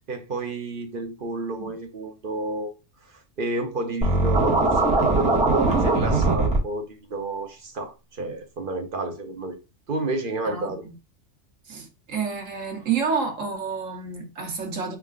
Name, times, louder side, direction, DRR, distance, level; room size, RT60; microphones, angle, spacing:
voice 1, 0.1-2.7 3.1-9.6 9.9-10.8, right 2 dB, 50° right, 0.9 m, -31 dB
Scratching (performance technique), 4.0-6.6, right 2 dB, 5° right, 1.4 m, -20 dB
voice 2, 10.4-10.9 11.7-15.0, right 5 dB, 85° right, 1.4 m, -29 dB
4.8 x 3.7 x 2.4 m
omnidirectional pair, 1.3 m